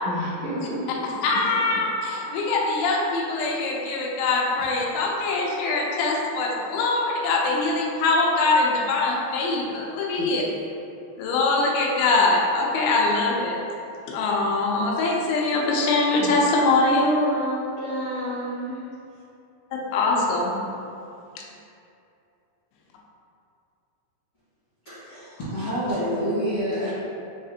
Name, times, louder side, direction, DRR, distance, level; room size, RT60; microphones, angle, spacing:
voice 1, 0.0-1.2 1.5-1.6 10.2-10.3 16.1-16.3 16.8-18.8, right 1 dB, 75° right, -13 dB, 1.9 m, -29 dB
voice 2, 1.2-10.4 11.2-13.6 14.1-17.1 19.9-20.6, left 3 dB, 90° left, -2 dB, 3.0 m, -23 dB
voice 3, 24.8-26.9, equal, 70° left, -16 dB, 1.4 m, -27 dB
6.7 x 2.4 x 2.7 m, 2.6 s
omnidirectional pair, 5.1 m